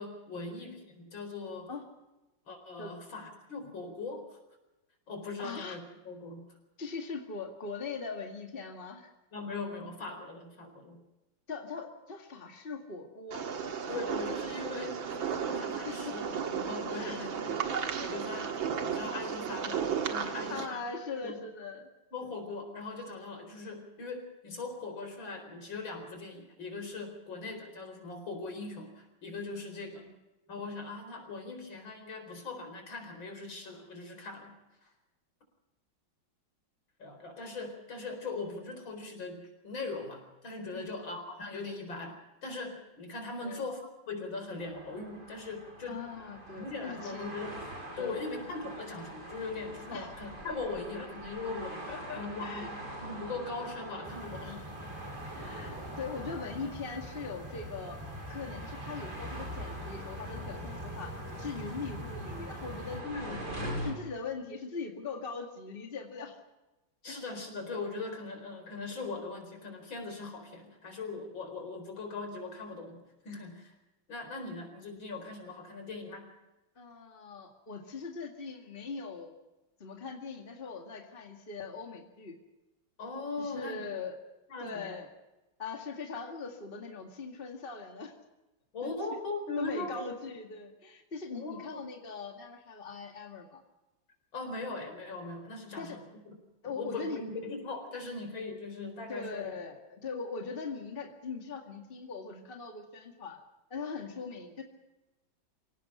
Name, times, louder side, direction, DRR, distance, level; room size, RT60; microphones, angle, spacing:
voice 1, 0.0-1.7 2.5-4.4 5.1-6.4 9.3-11.0 13.9-18.6 18.8-20.8 21.2-21.4 22.1-30.0 30.5-34.5 34.8-34.9 37.0-46.0 46.5-47.6 48.0-54.7 63.0-63.9 67.0-73.0 73.2-73.7 74.1-76.3 83.0-83.8 84.5-84.9 88.7-90.1 91.3-91.8 94.3-96.3 96.6-99.5, left 3 dB, 75° left, 5 dB, 5.2 m, -40 dB
voice 2, 5.4-5.8 6.8-9.1 11.5-13.4 15.8-16.2 16.9-17.2 20.5-21.9 40.7-40.9 43.4-43.6 45.9-47.3 48.0-48.3 49.9-50.1 51.9-52.7 55.3-58.0 58.3-61.1 61.4-63.4 63.8-66.4 67.1-67.2 76.8-79.3 79.8-82.4 83.4-84.2 84.6-85.1 85.6-88.1 88.8-88.9 89.6-93.6 95.8-96.0 96.6-97.2 99.1-103.4 103.7-104.6, left 4 dB, 25° left, 3 dB, 2.2 m, -41 dB
sound 1, 13.3-20.7, right 7 dB, 75° right, 2.4 m, -34 dB
sound 2, 44.6-63.9, right 1 dB, 55° right, 5.6 m, -43 dB
sound 3, 54.0-63.0, equal, 10° right, 2.4 m, -44 dB
26.5 x 17.5 x 5.7 m, 1.0 s
omnidirectional pair, 2.2 m